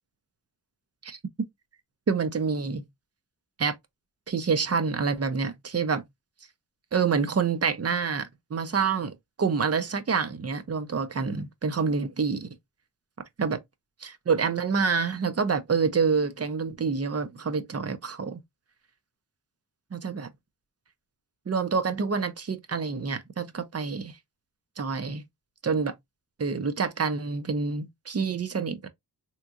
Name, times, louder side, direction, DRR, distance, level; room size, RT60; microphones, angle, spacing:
voice 1, 2.1-2.8 3.6-3.7 4.3-6.0 6.9-9.1 9.4-12.5 13.4-13.6 14.0-18.4 19.9-20.3 21.5-24.2 24.8-25.2 25.6-25.9 26.4-28.9, right 5 dB, 35° right, 0.6 m, -27 dB
3.5 x 3.0 x 2.4 m
wide cardioid pair, 110°, 42 cm